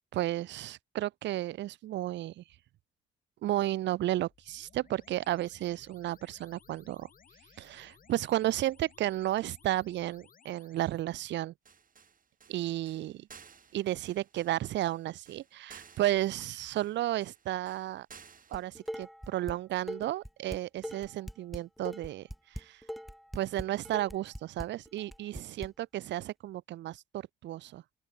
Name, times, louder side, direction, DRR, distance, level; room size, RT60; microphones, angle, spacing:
voice 1, 0.0-2.4 3.4-7.1 7.6-11.5 12.5-13.3 13.7-18.1 18.5-22.8 23.3-27.8, right 14 dB, 65° right, 0.5 m, -33 dB
sound 1, 4.2-11.0, left 6 dB, 45° left, 5.9 m, -61 dB
sound 2, 11.6-18.9, right 6 dB, 45° right, 5.6 m, -56 dB
Dishes pots and pans, 18.5-19.6 19.9-25.7, equal, ahead, 0.7 m, -41 dB
open air
cardioid pair, 90°, 20 cm